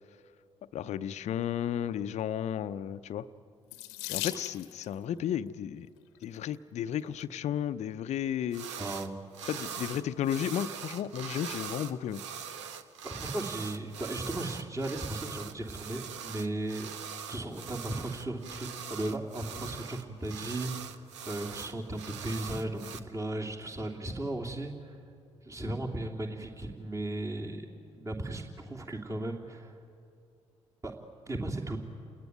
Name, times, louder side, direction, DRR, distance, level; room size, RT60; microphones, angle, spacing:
voice 1, 0.7-3.3 4.1-5.9 6.2-8.7 9.5-12.2, left 10 dB, 50° left, 12 dB, 0.7 m, -33 dB
Water tap faucet / Sink (filling or washing), 3.7-4.9 6.0-6.4 7.1-7.2 7.5-7.6, left 17 dB, 70° left, 1.0 m, -38 dB
sound 1, 8.5-9.1 9.3-23.0, right 7 dB, 80° right, 0.9 m, -42 dB
voice 2, 8.8-9.2 9.6-9.9 13.0-16.9 17.3-21.0 21.2-25.0 25.4-27.7 27.9-29.8 30.8-30.9 31.3-31.8, right 1 dB, 20° right, 0 dB, 3.0 m, -36 dB
29.5 x 20.0 x 9.5 m, 2.4 s
figure-of-eight pair, 45°, 15 cm